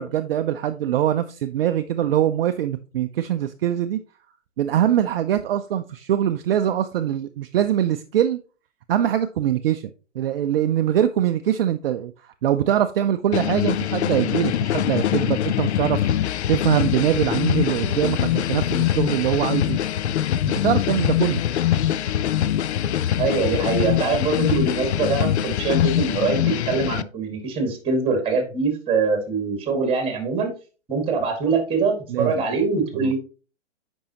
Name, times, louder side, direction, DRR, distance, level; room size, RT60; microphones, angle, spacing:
voice 1, 0.0-4.0 4.6-8.4 8.9-9.9 10.1-16.0 16.5-19.8 20.5-21.4 32.1-32.3 33.0-33.1, right 11 dB, 50° right, 8 dB, 0.5 m, -23 dB
sound 1, 13.3-27.0, left 11 dB, 60° left, 0.5 m, -23 dB
voice 2, 23.2-30.5 30.9-33.2, right 4 dB, 15° right, 4 dB, 2.0 m, -23 dB
8.5 x 5.3 x 2.9 m, 0.35 s
hypercardioid pair, 135°, 38 cm